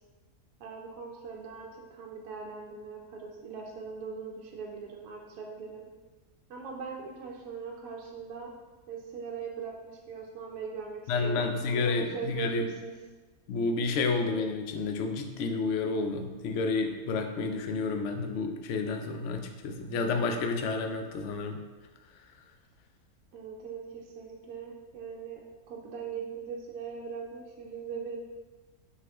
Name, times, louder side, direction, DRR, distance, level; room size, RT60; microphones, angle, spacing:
voice 1, 0.6-5.9 6.5-8.5 8.9-12.9 23.3-25.4 25.7-28.2, right 6 dB, 70° right, -1 dB, 1.0 m, -40 dB
voice 2, 11.1-12.6 13.5-21.6, left 4 dB, 65° left, 4 dB, 0.7 m, -30 dB
6.3 x 2.4 x 3.4 m, 1.2 s
omnidirectional pair, 1.6 m